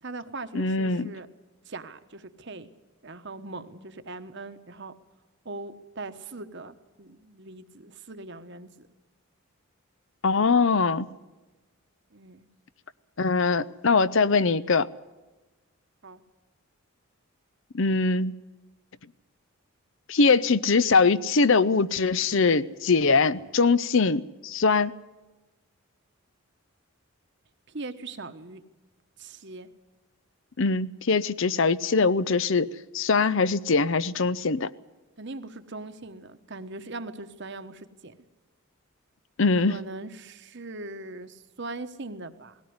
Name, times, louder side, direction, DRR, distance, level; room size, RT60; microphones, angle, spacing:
voice 1, 0.0-1.3 1.7-2.7 3.0-4.9 5.4-8.9 12.1-12.5 16.0-16.2 27.7-28.6 29.2-29.7 35.2-38.1 39.7-42.6, right 2 dB, 50° right, 1.2 m, -40 dB
voice 2, 0.5-1.1 10.2-11.1 13.2-14.9 17.7-18.4 20.1-24.9 30.6-32.7 32.9-34.7 39.4-39.8, left 4 dB, 55° left, 0.6 m, -22 dB
19.0 x 17.0 x 9.5 m
head